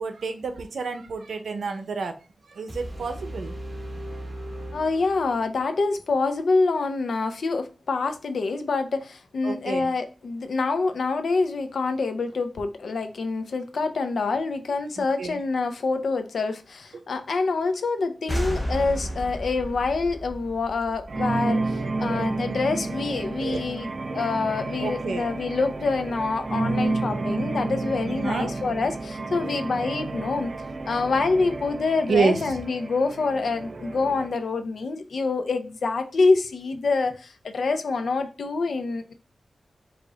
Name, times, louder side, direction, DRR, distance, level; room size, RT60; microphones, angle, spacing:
voice 1, 0.0-3.6 9.4-9.9 15.0-15.4 16.9-17.0 22.0-22.3 23.4-23.6 24.8-25.3 28.1-28.5 32.1-32.6, right 4 dB, 85° right, 0.7 m, -29 dB
sound 1, 2.7-5.7, right 1 dB, 20° right, 1.5 m, -37 dB
voice 2, 4.7-30.5 30.9-39.1, left 3 dB, 70° left, 0.6 m, -26 dB
sound 2, 18.3-21.8, equal, 15° left, 0.8 m, -32 dB
sound 3, 21.1-34.3, right 3 dB, 45° right, 0.4 m, -31 dB
4.9 x 2.5 x 3.5 m
wide cardioid pair, 150°, 0 cm